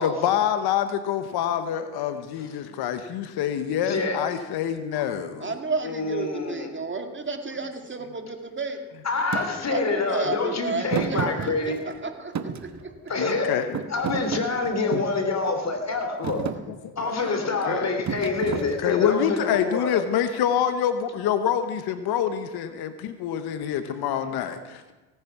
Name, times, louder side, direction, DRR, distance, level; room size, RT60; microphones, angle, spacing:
voice 1, 0.0-5.5 9.3-9.5 13.2-13.8 16.7-17.9 18.6-24.9, left 9 dB, 75° left, 10 dB, 1.1 m, -26 dB
voice 2, 3.8-4.2 5.8-6.7 9.0-11.8 13.1-16.4 17.0-19.9, left 3 dB, 45° left, 5 dB, 3.2 m, -27 dB
voice 3, 5.4-8.8 9.7-12.9 15.0-15.1 17.7-17.8, right 4 dB, 30° right, 5 dB, 2.1 m, -32 dB
Thump thud, 9.3-9.5 10.9-12.0 12.3-13.3 13.7-15.2 15.8-16.0 16.2-16.6 18.1-19.1, right 7 dB, 45° right, 1.2 m, -31 dB
18.0 x 9.5 x 5.9 m, 1.1 s
supercardioid pair, 70°, 38 cm